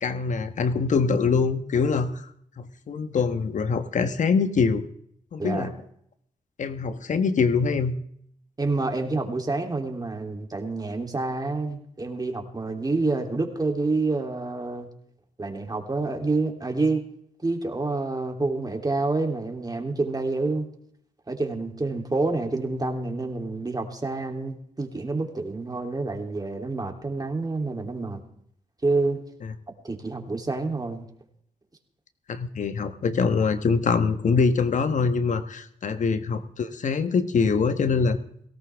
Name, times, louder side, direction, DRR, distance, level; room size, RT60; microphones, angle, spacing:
voice 1, 0.0-2.3 2.6-4.8 5.3-5.7 6.6-7.9 32.3-38.2, left 5 dB, 60° left, 10 dB, 1.2 m, -24 dB
voice 2, 5.4-5.7 8.6-14.9 15.4-17.0 17.4-20.7 21.3-28.2 28.8-29.2 29.8-31.1, right 3 dB, 30° right, 3 dB, 3.1 m, -28 dB
18.0 x 17.0 x 3.5 m, 0.68 s
supercardioid pair, 55°, 14 cm